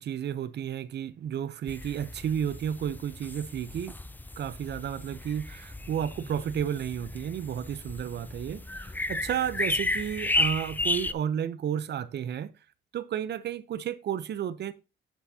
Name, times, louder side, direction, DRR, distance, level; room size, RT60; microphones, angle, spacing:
voice 1, 0.0-3.9 4.4-12.5 12.9-14.7, right 9 dB, 60° right, 0.7 m, -32 dB
sound 1, 1.7-11.1, left 2 dB, 10° left, 0.4 m, -33 dB
8.2 x 7.9 x 2.8 m
cardioid pair, 90°, 20 cm